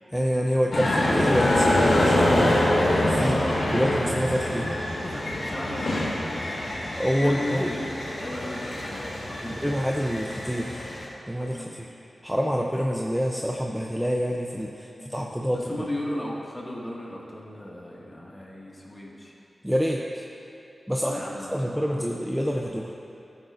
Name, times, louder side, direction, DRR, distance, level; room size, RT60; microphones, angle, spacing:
voice 1, 0.1-2.6 3.0-3.4 3.7-4.7 6.9-7.7 9.6-10.9 11.3-11.9 12.2-15.7 19.6-20.2 20.9-21.2 21.5-22.9, equal, 5° right, -1 dB, 0.6 m, -27 dB
sound 1, 0.7-11.1, left 1 dB, 85° left, 1.7 m, -25 dB
voice 2, 3.2-3.7 5.0-6.8 7.2-9.7 11.5-11.8 14.9-19.3 21.0-22.1, left 1 dB, 25° left, -4 dB, 2.0 m, -36 dB
15.0 x 9.1 x 2.6 m, 2.8 s
wide cardioid pair, 70°, 0 cm